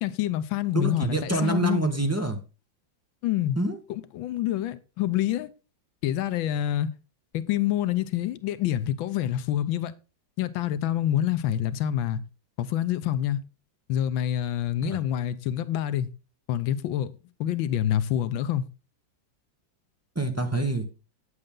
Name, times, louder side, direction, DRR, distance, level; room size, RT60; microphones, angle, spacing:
voice 1, 0.0-1.8 3.2-3.6 3.9-5.5 6.0-6.9 7.3-9.9 10.4-12.2 12.6-13.4 13.9-16.1 16.5-17.1 17.4-18.6, left 11 dB, 85° left, 1.5 m, -27 dB
voice 2, 0.7-2.4 3.6-3.8 14.8-15.0 20.1-20.8, right 2 dB, 10° right, 0.8 m, -26 dB
8.8 x 8.0 x 3.7 m
omnidirectional pair, 2.1 m